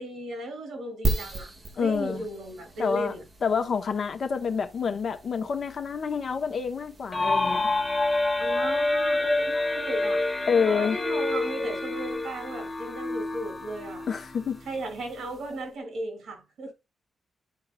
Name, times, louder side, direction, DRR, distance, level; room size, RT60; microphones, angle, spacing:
voice 1, 0.0-1.5 1.8-3.2 8.4-10.2 10.7-14.0 14.7-16.7, right 1 dB, 70° right, 3.1 m, -35 dB
sound 1, 1.0-15.8, right 2 dB, 20° right, 1.4 m, -39 dB
voice 2, 1.8-2.2 2.8-3.1 3.4-7.6 10.5-11.0 14.1-14.6, left 6 dB, 45° left, 1.0 m, -27 dB
sound 2, 7.1-14.7, left 2 dB, 15° left, 0.7 m, -28 dB
11.5 x 4.7 x 2.3 m
wide cardioid pair, 175°, 0 cm